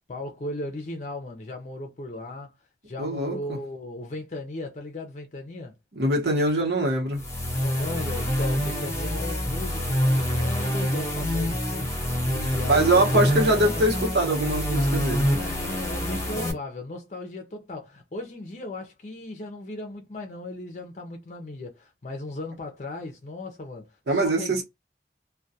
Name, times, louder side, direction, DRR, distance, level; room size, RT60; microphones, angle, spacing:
voice 1, 0.1-2.5 2.9-5.7 7.5-13.8 15.3-24.6, left 2 dB, 40° left, 0.5 m, -36 dB
voice 2, 3.0-3.6 5.9-7.2 12.7-15.3 24.1-24.6, right 1 dB, 70° right, 1.0 m, -23 dB
sound 1, 7.1-16.5, equal, 15° left, 0.8 m, -26 dB
2.2 x 2.2 x 2.7 m
head